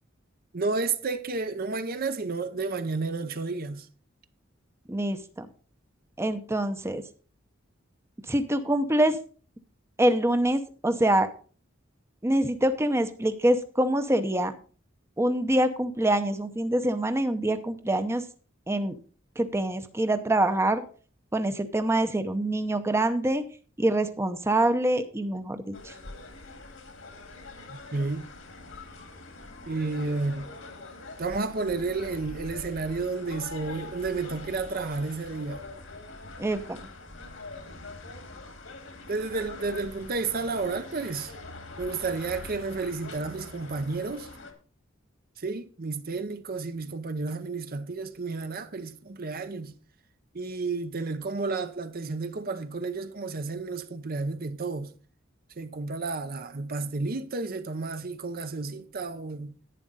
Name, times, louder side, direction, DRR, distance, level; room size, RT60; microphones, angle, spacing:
voice 1, 0.5-3.9 27.7-28.3 29.7-30.5 31.2-35.6 39.1-41.3 41.8-44.3 45.4-49.7 50.3-54.9 55.6-59.6, right 3 dB, 50° right, 0.7 m, -31 dB
voice 2, 4.9-5.5 6.2-7.0 8.3-9.2 10.0-11.3 12.2-14.5 15.2-18.2 18.7-19.0 19.4-20.8 21.3-23.4 23.8-25.9 36.4-36.8, right 1 dB, 15° right, 0.7 m, -25 dB
sound 1, 25.7-44.5, left 2 dB, 75° left, 2.3 m, -43 dB
11.0 x 9.1 x 4.0 m
head